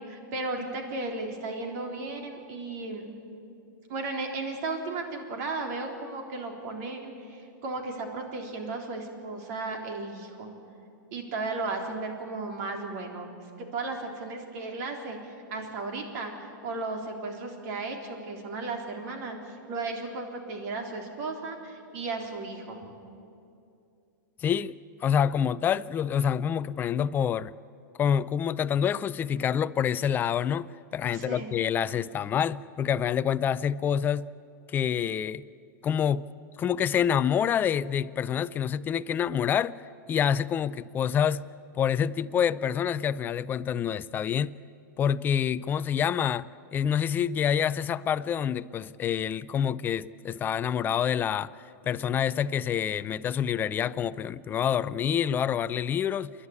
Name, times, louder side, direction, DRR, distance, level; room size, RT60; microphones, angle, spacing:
voice 1, 0.0-3.1 3.9-10.5 11.1-13.3 13.7-16.3 16.6-19.4 19.7-22.8 31.1-31.5, right 3 dB, 50° right, 3.8 m, -35 dB
voice 2, 24.4-24.7 25.0-27.5 28.0-34.3 34.7-35.4 35.8-36.3 36.6-39.8 40.1-41.5 41.8-44.5 45.0-46.5 46.7-51.5 51.8-56.3, left 8 dB, 20° left, 0.4 m, -27 dB
29.0 x 11.5 x 9.7 m
hypercardioid pair, 140°, 11 cm